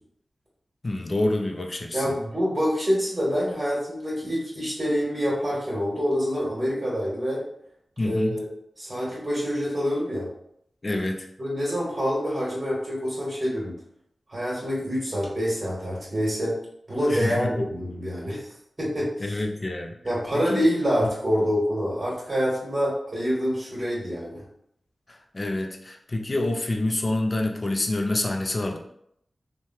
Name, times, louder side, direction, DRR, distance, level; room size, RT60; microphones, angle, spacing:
voice 1, 0.8-2.1 8.0-8.4 10.8-11.3 17.1-17.7 19.2-19.9 20.3-20.7 25.3-28.8, left 2 dB, 45° left, 3 dB, 0.4 m, -27 dB
voice 2, 1.9-7.4 8.0-8.5 8.8-10.3 11.4-13.8 14.3-16.6 16.9-18.5 18.8-19.4 20.0-24.4, equal, 35° right, -5 dB, 1.3 m, -26 dB
3.1 x 2.2 x 2.7 m, 0.73 s
cardioid pair, 45°, 0 cm